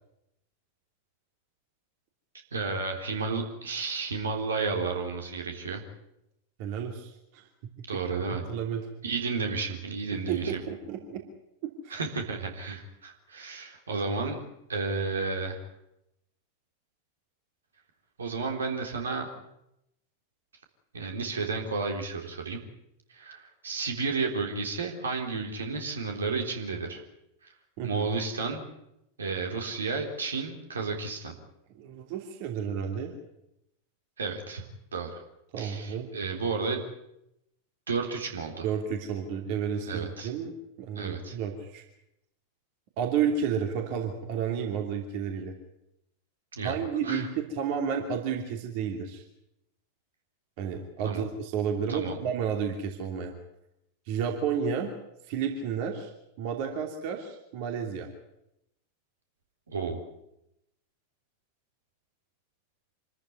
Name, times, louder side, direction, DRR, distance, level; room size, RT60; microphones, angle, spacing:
voice 1, 2.5-5.8 7.9-8.4 9.0-10.6 11.9-14.4 14.7-15.6 18.2-19.3 20.9-22.6 23.1-27.0 27.4-27.5 27.8-28.6 29.2-31.3 34.2-34.6 34.9-35.2 35.6-36.9 37.9-38.7 39.9-40.3 41.0-41.4 46.5-46.8 47.0-47.3 51.0-51.3 51.9-52.2 59.7-60.0, right 4 dB, 70° right, 3 dB, 3.7 m, -32 dB
voice 2, 6.6-7.5 8.5-8.9 10.1-11.2 11.6-11.9 27.8-28.1 31.8-33.1 35.5-36.1 38.6-40.5 40.8-41.8 43.0-45.5 46.6-49.2 50.6-53.3 54.1-54.9 55.3-56.1 56.4-58.1, right 7 dB, 45° right, 3 dB, 2.8 m, -31 dB
26.0 x 14.0 x 9.5 m, 0.83 s
figure-of-eight pair, 90°, 0 cm